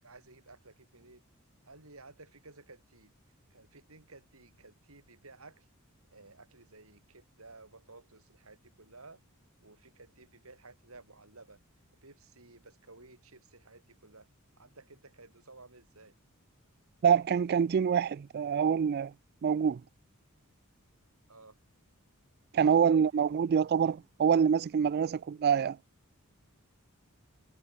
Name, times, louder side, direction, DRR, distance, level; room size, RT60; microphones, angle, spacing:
voice 1, 0.0-1.2 1.6-3.1 3.5-5.7 6.1-9.2 9.6-11.6 12.0-14.3 14.6-16.1 21.3-21.6 22.5-23.2, right 3 dB, 75° right, 6.1 m, -55 dB
voice 2, 17.0-19.1 19.4-19.8 22.5-25.8, right 7 dB, 45° right, 0.3 m, -26 dB
head